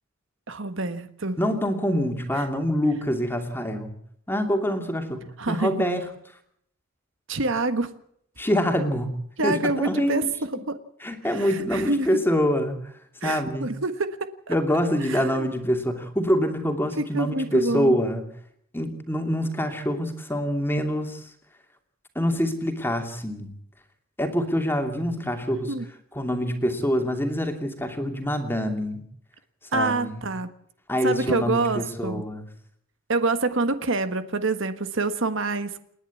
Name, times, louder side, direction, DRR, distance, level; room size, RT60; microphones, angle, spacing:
voice 1, 0.5-1.4 5.4-5.7 7.3-7.9 9.4-10.8 11.3-12.1 13.2-14.2 14.5-14.6 15.0-15.5 17.0-18.0 25.7-25.8 29.7-30.5 31.0-32.2 33.1-35.8, right 2 dB, 60° right, 10 dB, 1.5 m, -26 dB
voice 2, 1.4-3.9 4.3-6.1 8.4-9.1 9.4-10.3 11.0-12.8 13.2-13.7 14.5-18.2 18.7-21.3 22.1-23.5 24.2-25.7 26.1-29.0 29.7-30.2 30.9-32.4, equal, 10° left, 5 dB, 2.7 m, -25 dB
29.0 x 10.5 x 8.5 m, 0.69 s
head